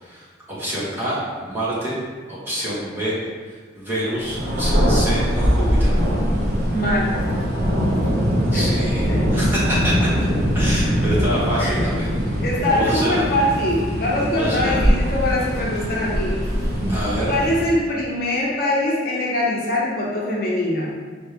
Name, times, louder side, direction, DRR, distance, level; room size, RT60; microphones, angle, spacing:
voice 1, 0.0-1.9 2.3-3.2 3.7-5.9 8.5-9.9 10.5-12.1 12.7-13.2 14.3-14.8 16.9-17.3, equal, 10° right, -10 dB, 1.2 m, -26 dB
Thunder, 4.2-17.9, equal, 55° right, 0.8 m, -21 dB
voice 2, 6.7-7.4 8.5-8.6 11.6-11.8 12.4-16.4 17.3-20.9, left 1 dB, 50° left, -5 dB, 0.7 m, -22 dB
4.3 x 3.2 x 3.3 m, 1.5 s
head